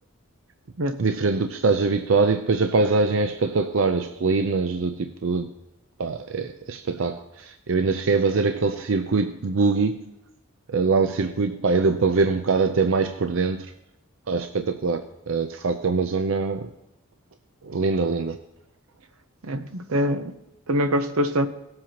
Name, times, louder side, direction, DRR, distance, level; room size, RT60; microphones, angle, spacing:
voice 1, 1.0-5.5 6.0-10.1 10.7-13.7 14.3-16.7 17.6-18.4, right 4 dB, 65° right, 8 dB, 0.5 m, -23 dB
voice 2, 19.4-20.3 20.7-21.5, equal, 90° right, 9 dB, 0.9 m, -24 dB
18.5 x 7.7 x 2.9 m, 0.89 s
head